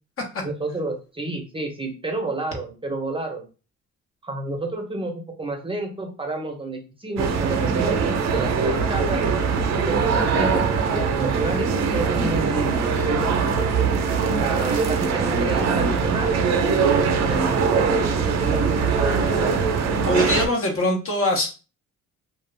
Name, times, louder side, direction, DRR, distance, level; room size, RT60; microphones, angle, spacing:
voice 1, 0.4-3.5 4.2-9.3 9.8-13.7 14.4-19.6, right 2 dB, 20° right, 2 dB, 0.7 m, -30 dB
sound 1, 7.2-20.5, right 5 dB, 60° right, 0.6 m, -22 dB
voice 2, 20.1-21.5, left 1 dB, 45° left, 2 dB, 0.9 m, -22 dB
2.4 x 2.3 x 3.2 m, 0.33 s
cardioid pair, 90°, 30 cm